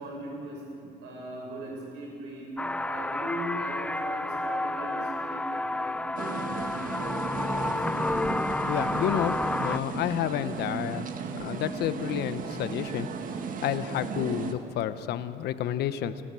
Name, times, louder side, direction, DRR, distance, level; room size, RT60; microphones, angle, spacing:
voice 1, 0.0-2.5 2.8-7.9 11.1-11.2, right 1 dB, 90° right, -2 dB, 7.1 m, -40 dB
sound 1, 2.6-9.8, left 2 dB, 5° left, 0.4 m, -30 dB
sound 2, 6.2-14.5, right 5 dB, 55° right, 1.7 m, -35 dB
voice 2, 8.7-11.1 11.3-13.1 13.6-16.2, left 11 dB, 75° left, 13 dB, 1.0 m, -30 dB
29.0 x 14.0 x 7.7 m, 2.6 s
cardioid pair, 110°, 17 cm